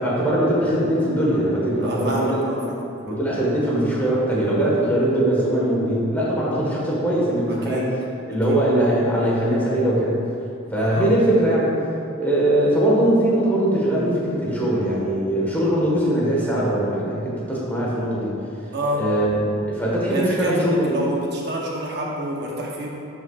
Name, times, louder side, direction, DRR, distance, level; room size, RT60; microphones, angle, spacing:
voice 1, 0.0-2.7 3.0-8.0 8.3-10.2 10.7-11.7 12.2-18.3 18.9-21.0, right 1 dB, 10° left, -6 dB, 1.5 m, -21 dB
voice 2, 1.8-2.6 3.1-3.2 7.5-7.9 8.5-8.6 10.8-11.1 18.7-19.0 20.1-22.9, right 1 dB, 55° right, -3 dB, 1.0 m, -28 dB
12.5 x 5.7 x 2.5 m, 2.7 s
head